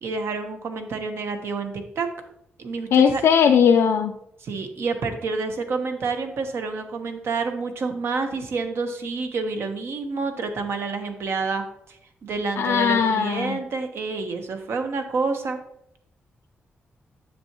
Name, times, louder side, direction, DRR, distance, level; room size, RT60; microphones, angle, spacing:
voice 1, 0.0-2.1 2.6-3.2 4.4-11.6 11.9-15.6, right 4 dB, 65° right, 6 dB, 1.0 m, -28 dB
voice 2, 2.9-4.1 12.6-13.6, left 7 dB, 85° left, 4 dB, 0.4 m, -18 dB
7.5 x 6.8 x 3.0 m, 0.76 s
wide cardioid pair, 130°, 4 cm